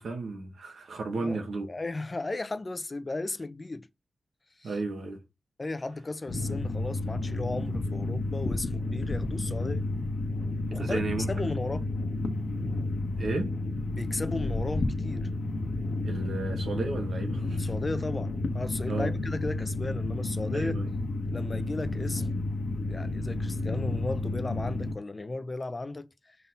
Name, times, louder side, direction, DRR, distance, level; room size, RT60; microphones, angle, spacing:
voice 1, 0.0-1.7 4.6-5.2 10.8-11.5 13.2-13.6 16.0-17.7 18.9-19.1 20.5-20.9, right 3 dB, 80° right, 1.6 m, -33 dB
voice 2, 1.7-3.9 4.6-4.7 5.6-9.8 10.7-11.9 13.9-15.3 17.6-20.8 21.3-22.4 22.8-26.4, left 2 dB, 30° left, 0.6 m, -35 dB
sound 1, 6.3-24.9, left 2 dB, 65° left, 1.1 m, -31 dB
5.5 x 4.1 x 5.5 m
wide cardioid pair, 110°, 0 cm